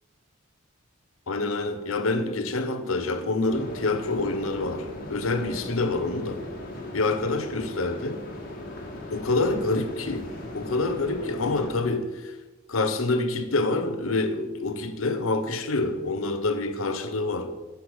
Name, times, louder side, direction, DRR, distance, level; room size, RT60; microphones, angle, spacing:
voice 1, 1.3-6.4 6.9-8.2 9.1-12.3 12.7-17.5, left 2 dB, 75° left, 0.8 m, -27 dB
sound 1, 2.8-9.8, left 3 dB, 65° right, 1.1 m, -51 dB
sound 2, 3.5-11.7, left 1 dB, 40° left, 1.6 m, -38 dB
9.8 x 5.9 x 4.8 m
head